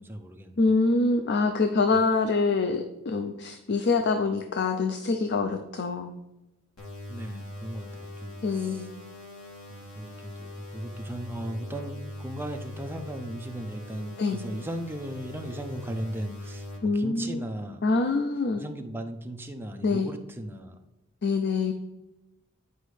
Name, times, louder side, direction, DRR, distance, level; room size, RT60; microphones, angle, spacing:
voice 1, 0.0-0.6 7.1-8.9 9.7-16.7 16.9-17.8 18.6-20.8, right 1 dB, 10° right, 5 dB, 0.6 m, -37 dB
voice 2, 0.6-6.1 8.4-8.9 14.2-14.4 16.8-17.4 17.8-18.6 19.8-20.1 21.2-21.7, left 3 dB, 50° left, 7 dB, 0.5 m, -25 dB
sound 1, 6.8-16.8, left 1 dB, 75° left, 2.3 m, -41 dB
9.9 x 5.2 x 3.3 m, 0.97 s
head